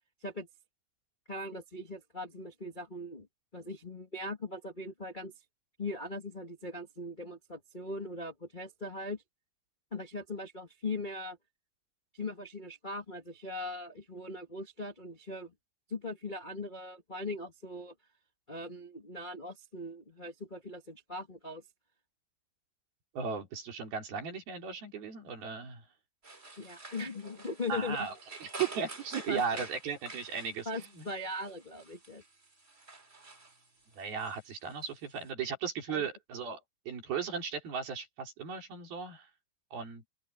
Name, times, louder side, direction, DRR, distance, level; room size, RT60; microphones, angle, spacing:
voice 1, 1.3-3.3 3.5-5.3 5.8-9.2 9.9-11.4 12.1-15.5 15.9-17.9 18.5-21.6 26.6-28.1 29.3-29.6 30.6-32.2 35.9-36.1, left 2 dB, 85° left, 0.4 m, -40 dB
voice 2, 23.1-25.9 27.7-28.1 28.4-31.1 34.0-36.6 36.9-39.3 39.7-40.1, right 6 dB, 80° right, 6.2 m, -36 dB
sound 1, 26.2-35.3, right 3 dB, 20° right, 2.5 m, -49 dB
open air
omnidirectional pair, 4.3 m